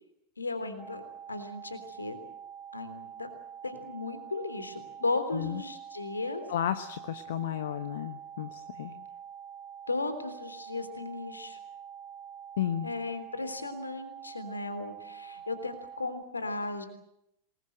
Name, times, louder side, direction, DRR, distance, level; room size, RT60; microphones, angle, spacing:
voice 1, 0.4-2.2 2.7-3.3 3.6-6.4 9.9-11.6 12.8-16.8, left 3 dB, 80° left, 10 dB, 3.4 m, -35 dB
sound 1, 0.8-16.2, right 8 dB, 5° right, 4.2 m, -46 dB
voice 2, 6.5-8.9 12.6-12.9, left 10 dB, 60° left, 11 dB, 1.1 m, -33 dB
27.0 x 20.5 x 7.9 m, 0.82 s
figure-of-eight pair, 90°, 0 cm